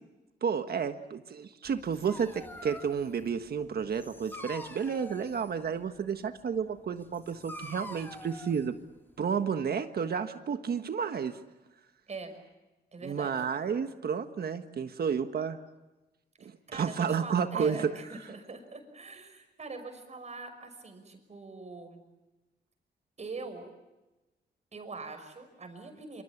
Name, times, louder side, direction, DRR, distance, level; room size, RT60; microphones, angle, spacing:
voice 1, 0.4-8.7 9.2-11.4 13.0-15.6 16.4-17.9, right 6 dB, 60° right, 8 dB, 1.5 m, -31 dB
Dog, 1.6-9.5, left 1 dB, 10° left, 3.6 m, -47 dB
voice 2, 12.9-13.3 16.4-22.0 23.2-23.7 24.7-26.2, right 3 dB, 40° right, 6 dB, 5.8 m, -43 dB
27.0 x 26.5 x 7.3 m, 1.1 s
wide cardioid pair, 125°, 18 cm